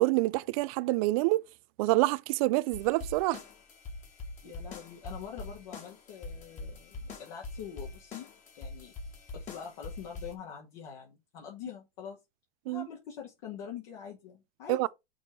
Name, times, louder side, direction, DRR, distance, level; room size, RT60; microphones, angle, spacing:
voice 1, 0.0-1.4 1.8-3.4 12.7-12.9 14.7-14.9, right 20 dB, 40° right, 0.5 m, -27 dB
sound 1, 2.7-10.3, left 3 dB, 25° left, 2.0 m, -44 dB
voice 2, 4.4-8.3 8.5-8.9 9.3-12.2 12.7-14.8, left 8 dB, 45° left, 2.0 m, -44 dB
6.1 x 3.7 x 5.9 m
hypercardioid pair, 130°, 30 cm